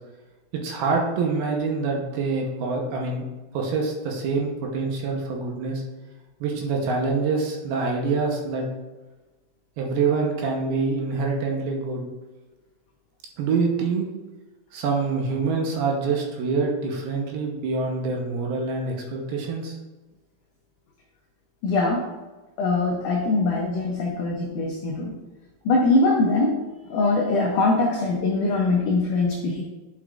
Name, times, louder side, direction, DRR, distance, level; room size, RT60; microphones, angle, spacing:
voice 1, 0.5-3.2 3.5-5.8 6.4-8.7 9.8-12.0 13.4-14.1 14.7-19.8, right 4 dB, 75° right, 1 dB, 2.6 m, -25 dB
voice 2, 21.6-22.1 22.6-25.1 25.6-26.6 26.9-29.6, left 3 dB, 85° left, 0 dB, 1.8 m, -22 dB
9.2 x 6.2 x 2.5 m, 1.2 s
omnidirectional pair, 4.7 m